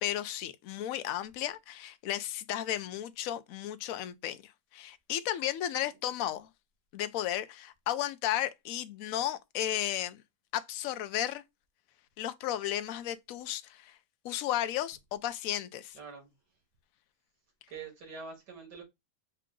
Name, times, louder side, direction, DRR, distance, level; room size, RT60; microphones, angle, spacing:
voice 1, 0.0-6.5 6.9-10.2 10.5-11.4 12.2-14.0 14.2-16.0, left 12 dB, 70° left, 0.9 m, -34 dB
voice 2, 15.9-16.3 17.7-18.8, right 5 dB, 90° right, 2.4 m, -45 dB
5.7 x 2.5 x 3.6 m
omnidirectional pair, 1.7 m